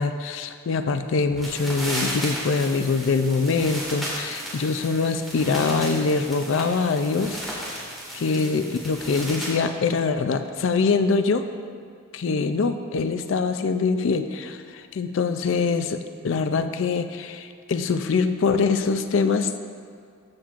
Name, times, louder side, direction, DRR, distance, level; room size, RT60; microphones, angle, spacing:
voice 1, 0.0-7.7 8.1-11.5 12.1-19.6, left 4 dB, 65° left, 9 dB, 0.4 m, -24 dB
sound 1, 1.3-9.6, equal, ahead, 2.0 m, -34 dB
14.0 x 7.3 x 2.5 m, 2.3 s
head